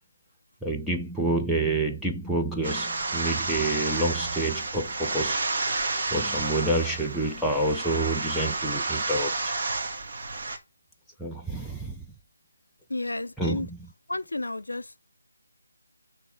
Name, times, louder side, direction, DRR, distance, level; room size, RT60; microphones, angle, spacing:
voice 1, 0.6-5.4 6.1-9.5 11.2-12.0 13.4-13.8, right 2 dB, ahead, 0.6 m, -28 dB
sound 1, 2.6-10.6, right 3 dB, 35° right, 1.6 m, -30 dB
voice 2, 12.9-13.7 14.1-15.0, left 2 dB, 70° left, 0.7 m, -32 dB
9.2 x 3.4 x 6.4 m
figure-of-eight pair, 155°, 0 cm